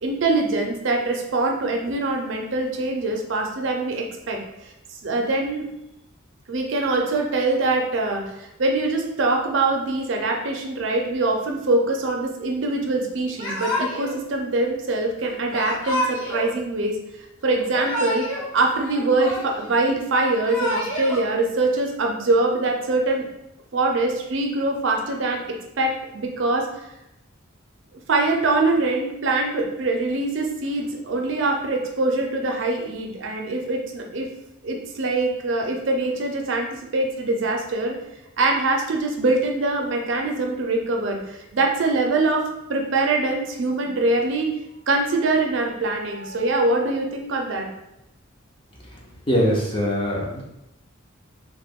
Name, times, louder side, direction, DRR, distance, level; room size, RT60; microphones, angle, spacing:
voice 1, 0.0-5.6 6.5-17.0 17.4-18.3 18.5-23.3 23.7-26.7 28.1-34.3 34.6-38.0 38.4-44.5 44.9-47.7, right 2 dB, 65° right, 2 dB, 0.5 m, -23 dB
Yell / Crying sobbing, 13.4-14.2 15.5-16.5 17.5-18.5 18.7-19.7 20.3-21.2, left 1 dB, 75° left, 0.9 m, -28 dB
voice 2, 49.3-50.4, equal, 25° left, -3 dB, 0.6 m, -22 dB
3.0 x 2.1 x 3.5 m, 0.87 s
head